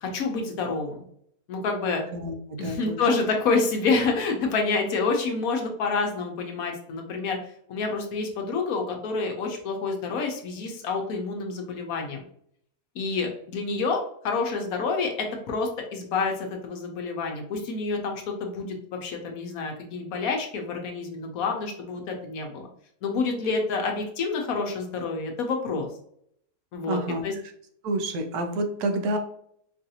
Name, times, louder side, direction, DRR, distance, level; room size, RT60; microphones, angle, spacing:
voice 1, 0.0-1.1 1.5-2.0 2.6-7.4 7.7-12.2 12.9-22.6 23.0-25.9 26.7-27.3, left 4 dB, 70° left, 2 dB, 1.2 m, -28 dB
voice 2, 2.1-3.0 26.9-27.2 27.8-29.2, right 1 dB, 80° right, 6 dB, 1.2 m, -29 dB
4.7 x 2.5 x 2.8 m, 0.68 s
omnidirectional pair, 1.6 m